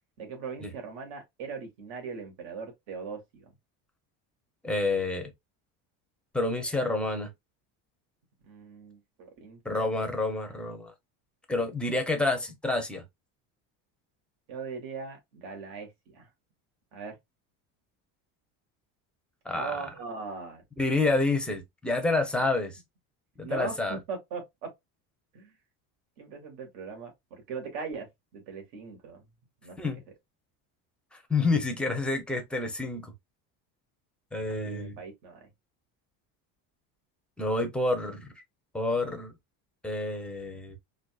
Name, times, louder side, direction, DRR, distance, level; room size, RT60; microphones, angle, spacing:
voice 1, 0.2-3.5 8.4-9.9 14.5-16.3 16.9-17.2 19.5-20.6 23.4-24.7 25.3-25.5 26.2-28.1 28.3-29.2 29.6-29.8 34.7-35.5, right 5 dB, 75° right, 2.0 m, -39 dB
voice 2, 4.6-5.3 6.3-7.3 9.6-10.9 11.5-13.0 19.5-19.8 20.8-22.8 23.4-24.0 29.8-30.0 31.1-33.1 34.3-35.0 37.4-38.3 38.7-39.3 39.8-40.8, left 2 dB, 5° left, 0.5 m, -28 dB
4.0 x 2.6 x 2.2 m
cardioid pair, 165°, 37 cm